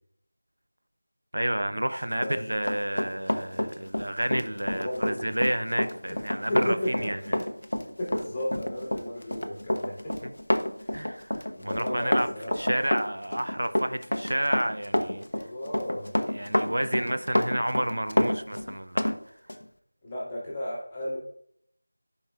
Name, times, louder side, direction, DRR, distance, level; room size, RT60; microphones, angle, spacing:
voice 1, 1.3-7.2 10.9-12.3 12.6-15.5 16.3-19.1, right 1 dB, 80° right, 10 dB, 0.6 m, -30 dB
Run, 2.1-19.2 19.5-19.6, left 1 dB, 80° left, 0.8 m, -28 dB
voice 2, 4.7-5.3 6.1-6.2 6.5-7.4 8.0-10.3 10.8-11.0 11.5-12.8 15.3-16.1 17.0-17.1 20.0-21.2, left 1 dB, 15° left, -8 dB, 2.1 m, -34 dB
11.0 x 5.3 x 2.5 m, 0.67 s
figure-of-eight pair, 170°, 0 cm